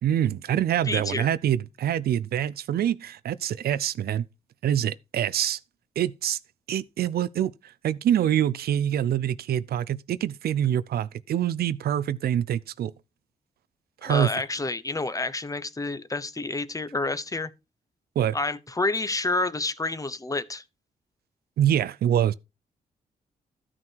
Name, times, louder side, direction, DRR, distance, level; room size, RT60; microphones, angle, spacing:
voice 1, 0.0-4.2 4.6-5.6 6.0-6.4 6.7-7.5 7.8-12.9 14.0-14.3 18.2-18.4 21.6-22.3, right 10 dB, 80° right, 0.6 m, -25 dB
voice 2, 0.9-1.3 14.0-17.5 18.3-20.6, left 2 dB, 20° left, 1.0 m, -29 dB
13.0 x 6.1 x 4.6 m
cardioid pair, 85°, 16 cm